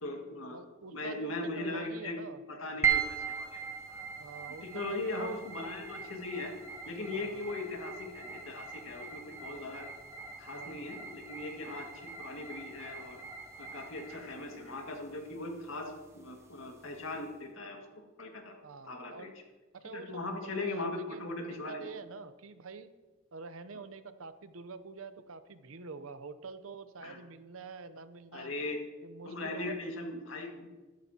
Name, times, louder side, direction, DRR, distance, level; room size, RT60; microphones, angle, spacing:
voice 1, 0.0-0.6 0.9-2.2 2.5-3.6 3.9-4.1 4.6-6.5 6.9-9.9 10.4-13.2 13.6-18.6 18.8-19.3 19.9-21.8 27.0-27.2 28.3-28.8 29.3-30.7, left 2 dB, 80° left, 2 dB, 1.9 m, -39 dB
voice 2, 0.5-2.4 4.2-5.4 7.1-7.5 10.5-10.9 18.6-19.3 19.7-22.9 23.3-28.5 29.0-29.8, right 4 dB, 85° right, 12 dB, 0.7 m, -46 dB
sound 1, 2.8-17.3, right 7 dB, 15° right, 0.7 m, -39 dB
14.0 x 12.5 x 2.8 m, 1.3 s
head